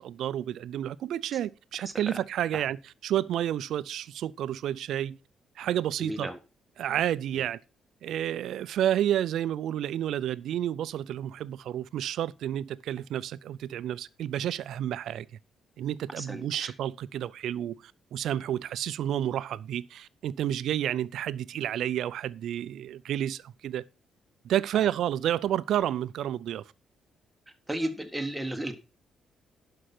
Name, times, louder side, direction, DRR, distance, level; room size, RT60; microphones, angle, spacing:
voice 1, 0.0-2.8 3.0-5.2 5.6-6.3 6.8-7.6 8.0-15.3 15.8-23.8 24.4-26.6, right 11 dB, 80° right, 0.5 m, -30 dB
voice 2, 6.0-6.4 7.3-7.4 16.2-16.7 24.8-24.9 27.7-28.8, right 1 dB, 5° right, 1.6 m, -34 dB
11.5 x 5.6 x 5.9 m
cardioid pair, 115°, 0 cm